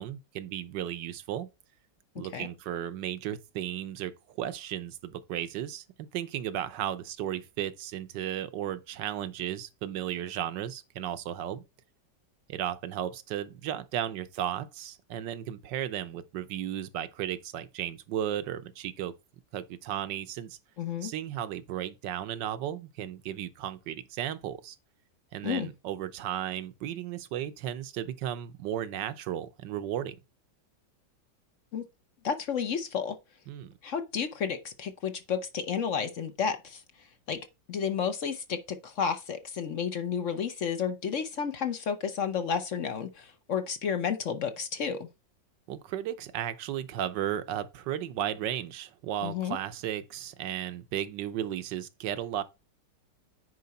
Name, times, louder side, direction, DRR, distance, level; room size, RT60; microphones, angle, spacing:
voice 1, 0.0-1.5 2.2-11.6 12.5-19.1 19.5-20.6 21.0-24.8 25.3-30.2 33.5-33.7 45.7-52.4, right 11 dB, 75° right, 1.4 m, -35 dB
voice 2, 20.8-21.1 25.4-25.7 31.7-31.8 32.2-33.2 33.8-36.8 37.3-37.4 37.7-45.1 49.2-49.6, left 7 dB, 55° left, 1.0 m, -31 dB
9.5 x 4.6 x 4.1 m
omnidirectional pair, 1.9 m